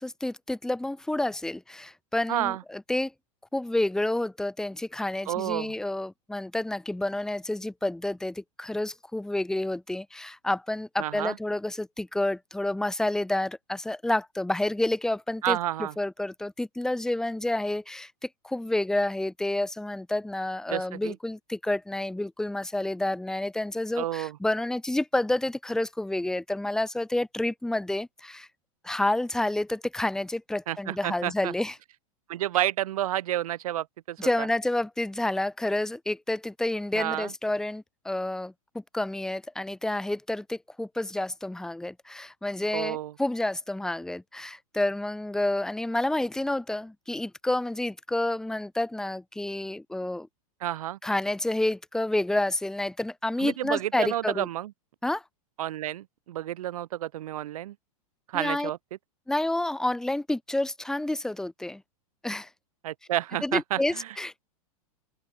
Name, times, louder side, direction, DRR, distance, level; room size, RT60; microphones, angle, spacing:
voice 1, 0.0-3.1 3.5-15.6 16.0-28.5 28.8-31.7 34.2-38.5 38.9-50.3 51.0-54.5 55.0-55.2 58.3-58.7 59.3-61.8 62.2-62.5 63.4-64.4, left 1 dB, 5° left, 1.9 m, -29 dB
voice 2, 2.3-2.6 5.3-5.7 11.0-11.4 15.4-15.9 20.7-21.1 24.0-24.4 30.7-31.5 32.3-34.5 36.9-37.3 42.7-43.1 50.6-51.0 53.4-54.7 55.6-57.7 58.3-58.8 62.8-64.1, right 13 dB, 75° right, 2.7 m, -30 dB
open air
supercardioid pair, 140°, 19 cm